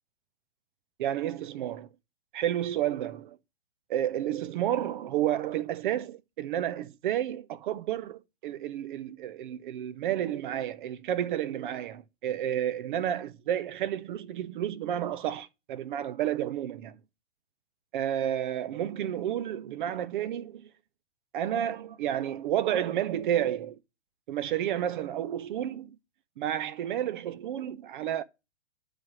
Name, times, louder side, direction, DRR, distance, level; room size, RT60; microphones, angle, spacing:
voice 1, 1.0-1.9 2.3-3.4 3.9-17.0 17.9-20.7 21.3-23.8 24.3-26.0 26.4-28.2, right 11 dB, 45° right, 0.5 m, -31 dB
9.2 x 3.2 x 6.0 m
hypercardioid pair, 135°, 36 cm